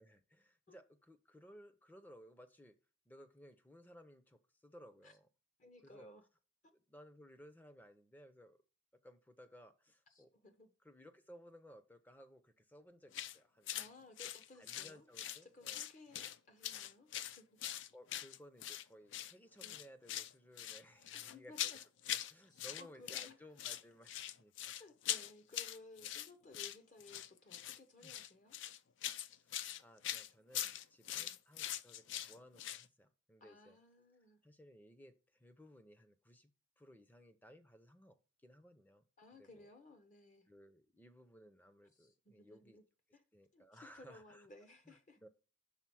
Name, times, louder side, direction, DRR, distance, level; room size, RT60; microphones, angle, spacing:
voice 1, 0.0-2.8 3.1-5.3 5.8-6.1 6.7-8.6 8.9-10.3 10.8-13.7 14.6-15.8 17.9-24.8 28.0-28.2 29.3-33.8 34.4-36.5 36.8-39.0 39.4-39.7 40.5-42.8 43.3-44.5 44.9-45.0 45.2-45.3, equal, 10° left, 0.5 m, -60 dB
voice 2, 5.6-6.3 10.1-10.7 13.7-15.1 15.4-17.5 19.6-19.8 21.1-21.8 22.5-23.4 24.7-28.6 31.1-31.4 33.4-34.4 39.2-40.5 41.9-42.8 43.1-43.2 43.5-45.2, left 2 dB, 40° left, 0.8 m, -59 dB
Walking around in squishy shoes, 13.1-13.4 13.7-13.9 14.2-15.4 15.6-16.4 16.6-18.8 19.1-19.3 19.6-20.3 20.6-22.3 22.6-23.3 23.6-32.8, left 11 dB, 65° left, 0.4 m, -42 dB
5.7 x 3.9 x 6.0 m
head